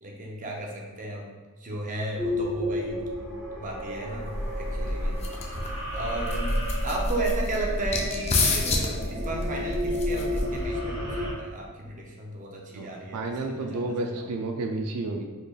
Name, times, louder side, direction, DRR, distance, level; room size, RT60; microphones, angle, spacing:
voice 1, 0.0-1.3 1.6-3.0 3.6-5.6 5.9-6.5 6.8-14.3, right 2 dB, 35° right, -1 dB, 0.6 m, -35 dB
sound 1, 2.2-11.3, left 1 dB, 15° right, 1.0 m, -33 dB
sound 2, 4.1-10.8, left 2 dB, 30° left, 0.4 m, -29 dB
voice 2, 13.1-15.2, right 2 dB, 85° right, 3 dB, 0.4 m, -30 dB
4.1 x 3.3 x 2.4 m, 1.3 s
head